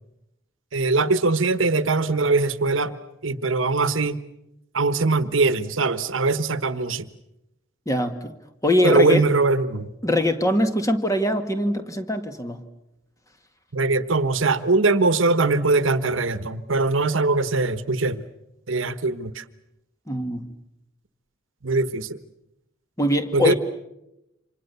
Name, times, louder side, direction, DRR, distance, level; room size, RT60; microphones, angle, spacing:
voice 1, 0.7-2.9 3.2-4.2 4.7-7.1 8.8-9.9 13.7-18.3 18.7-19.4 21.6-22.2 23.3-23.5, right 3 dB, 70° right, 13 dB, 1.2 m, -21 dB
voice 2, 7.9-8.3 8.6-9.2 10.0-12.6 20.1-20.5 23.0-23.5, left 1 dB, 15° left, 7 dB, 1.9 m, -22 dB
28.5 x 26.5 x 6.9 m, 0.89 s
head